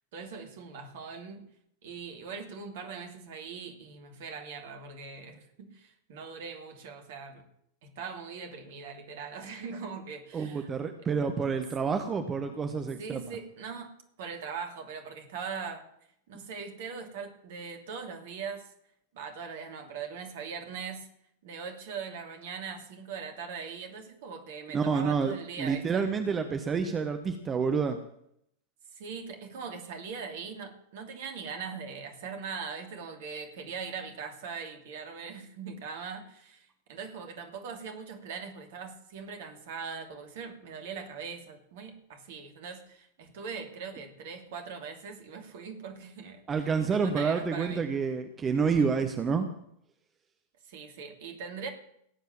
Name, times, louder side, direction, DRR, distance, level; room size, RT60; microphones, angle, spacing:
voice 1, 0.1-1.4 1.8-7.5 7.8-10.7 13.0-15.8 16.3-18.7 19.1-21.1 21.4-26.1 28.9-46.6 46.9-47.8 50.7-51.7, right 5 dB, 55° right, 5 dB, 2.7 m, -41 dB
voice 2, 10.3-13.2 24.7-28.0 46.5-49.5, right 5 dB, 20° right, 7 dB, 1.2 m, -28 dB
18.0 x 8.2 x 7.3 m, 0.73 s
figure-of-eight pair, 90°, 0 cm